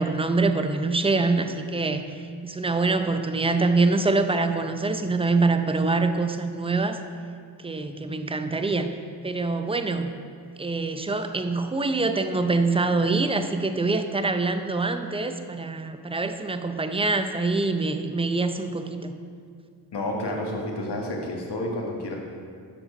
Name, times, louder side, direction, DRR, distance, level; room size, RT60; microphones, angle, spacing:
voice 1, 0.0-2.1 2.4-7.0 7.6-8.9 9.2-10.1 10.6-19.2, right 3 dB, 15° right, 8 dB, 0.6 m, -25 dB
voice 2, 19.9-22.1, left 1 dB, 65° left, 0 dB, 1.6 m, -30 dB
6.8 x 5.9 x 5.5 m, 2.2 s
cardioid pair, 45°, 44 cm